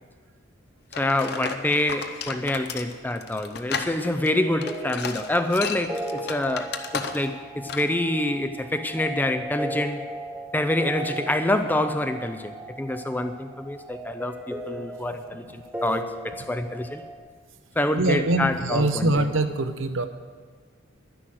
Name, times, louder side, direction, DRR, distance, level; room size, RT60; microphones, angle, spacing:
sound 1, 0.9-7.4 7.7-7.9, left 5 dB, 50° left, 0.8 m, -33 dB
voice 1, 0.9-10.0 10.5-17.0 17.8-19.3, left 1 dB, 10° left, 8 dB, 0.5 m, -26 dB
sound 2, 4.2-17.2, right 1 dB, 5° right, 1.0 m, -37 dB
voice 2, 17.9-20.1, right 2 dB, 70° right, 9 dB, 0.8 m, -23 dB
11.5 x 10.0 x 6.3 m, 1.5 s
head